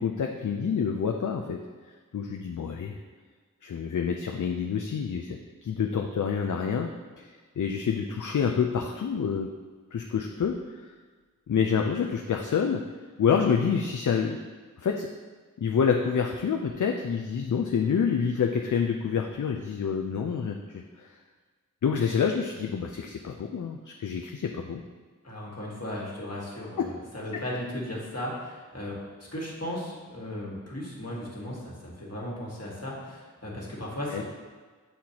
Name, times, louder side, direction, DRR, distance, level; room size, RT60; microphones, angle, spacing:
voice 1, 0.0-1.6 2.1-3.0 3.6-6.9 7.2-7.3 7.6-9.5 9.9-10.9 11.5-12.8 13.2-14.4 14.8-15.1 15.6-21.1 21.8-24.8 26.8-26.9 34.1-34.2, left 6 dB, 70° left, 3 dB, 0.5 m, -27 dB
voice 2, 25.2-34.2, left 1 dB, 50° left, -4 dB, 1.6 m, -36 dB
7.6 x 4.3 x 2.8 m, 1.4 s
wide cardioid pair, 45°, 32 cm